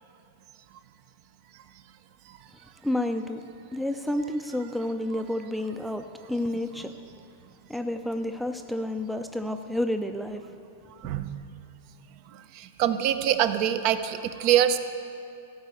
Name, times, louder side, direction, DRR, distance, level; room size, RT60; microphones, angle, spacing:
voice 1, 2.8-3.4 3.7-6.9 7.7-10.4, left 1 dB, ahead, 7 dB, 0.5 m, -30 dB
voice 2, 11.0-11.4 12.3-14.8, right 11 dB, 50° right, 11 dB, 0.7 m, -24 dB
13.5 x 5.5 x 8.2 m, 2.8 s
hypercardioid pair, 115°, 0 cm